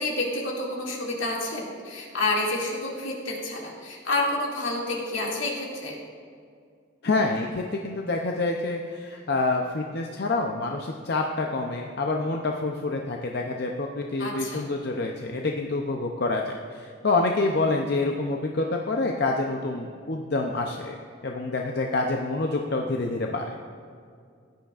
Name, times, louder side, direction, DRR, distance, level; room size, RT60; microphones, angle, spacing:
voice 1, 0.0-5.9 14.2-14.6, left 2 dB, 80° left, -3 dB, 2.3 m, -29 dB
voice 2, 7.0-21.0 21.2-23.6, left 3 dB, 55° left, 2 dB, 0.6 m, -27 dB
15.5 x 10.5 x 2.5 m, 2.2 s
head